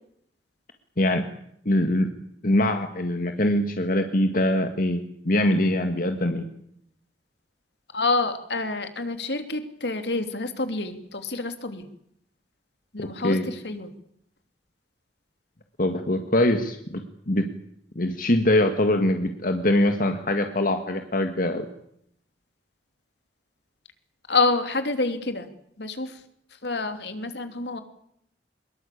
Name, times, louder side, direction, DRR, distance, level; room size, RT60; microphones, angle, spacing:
voice 1, 1.0-1.3 1.7-2.1 2.4-6.5 13.0-13.5 15.8-17.5 18.0-21.7, left 1 dB, 50° left, 6 dB, 1.9 m, -23 dB
voice 2, 7.9-11.9 12.9-13.9 24.3-25.5 25.8-26.2 26.6-27.8, left 3 dB, 70° left, 8 dB, 2.9 m, -27 dB
23.5 x 22.0 x 8.5 m, 0.71 s
head